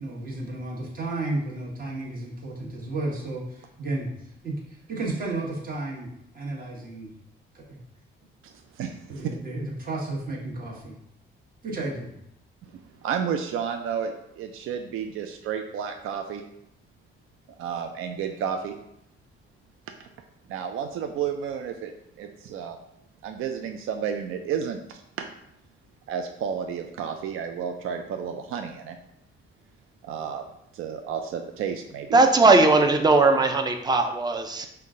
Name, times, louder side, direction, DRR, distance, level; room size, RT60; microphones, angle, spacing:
voice 1, 0.0-4.1 4.4-6.1 6.3-7.1 7.7-7.8 9.1-11.0 11.6-12.1, right 2 dB, 45° right, -3 dB, 1.2 m, -32 dB
voice 2, 8.4-9.3 13.0-16.4 17.6-18.7 20.5-21.9 22.2-22.8 23.2-25.3 26.1-29.0 30.0-30.5 30.7-32.2, right 7 dB, 80° right, 5 dB, 0.4 m, -31 dB
voice 3, 32.1-34.7, right 3 dB, 20° right, 6 dB, 0.4 m, -19 dB
5.4 x 2.2 x 3.7 m, 0.76 s
cardioid pair, 130°, 21 cm